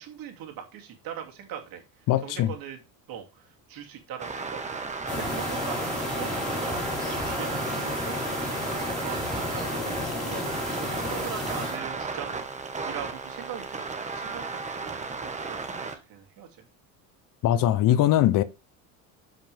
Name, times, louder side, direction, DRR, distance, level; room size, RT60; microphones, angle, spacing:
voice 1, 0.0-2.8 3.1-10.5 10.8-16.7, right 9 dB, 55° right, 2.7 m, -41 dB
voice 2, 2.1-2.5 17.4-18.4, left 12 dB, 50° left, 0.7 m, -21 dB
sound 1, 4.2-16.0, right 4 dB, 15° right, 1.3 m, -35 dB
sound 2, 5.1-11.8, left 2 dB, ahead, 4.5 m, -32 dB
10.5 x 5.8 x 3.4 m
supercardioid pair, 115°, 43 cm